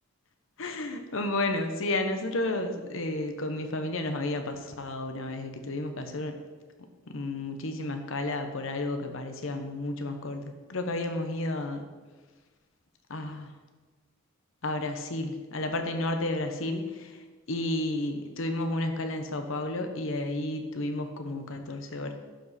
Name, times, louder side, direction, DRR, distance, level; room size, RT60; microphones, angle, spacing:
voice 1, 0.6-6.3 7.1-11.8 13.1-13.5 14.6-17.2 17.5-22.1, left 2 dB, 60° left, 6 dB, 0.9 m, -32 dB
11.5 x 5.1 x 4.2 m, 1.4 s
head